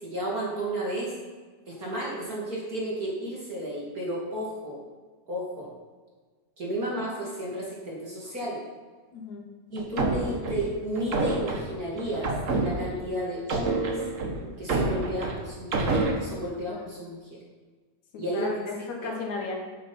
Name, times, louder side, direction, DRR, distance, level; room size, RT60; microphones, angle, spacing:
voice 1, 0.0-1.1 1.7-4.8 5.3-5.7 6.6-8.6 9.7-12.3 12.6-14.0 14.6-17.2 18.2-18.5 19.0-19.1, right 1 dB, 30° right, -5 dB, 2.6 m, -32 dB
voice 2, 9.1-9.5 16.7-16.9 18.1-19.5, left 3 dB, 70° left, 1 dB, 2.7 m, -35 dB
sound 1, 9.8-13.1 13.5-16.1, right 2 dB, 85° right, 0.7 m, -28 dB
11.5 x 9.1 x 4.3 m, 1.4 s
omnidirectional pair, 3.4 m